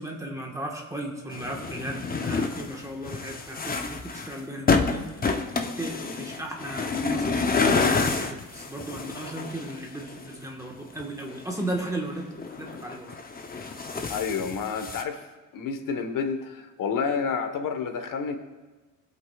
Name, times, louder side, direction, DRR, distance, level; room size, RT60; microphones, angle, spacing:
voice 1, 0.0-5.0 5.6-12.3 12.6-13.1, right 1 dB, 10° right, -1 dB, 1.4 m, -35 dB
sound 1, 1.3-10.4 11.0-11.9 12.2-15.0, left 4 dB, 25° left, 0.7 m, -28 dB
voice 2, 14.1-15.2 15.5-18.4, left 5 dB, 65° left, 7 dB, 1.3 m, -29 dB
20.0 x 8.0 x 2.4 m, 1.2 s
cardioid pair, 115°, 35 cm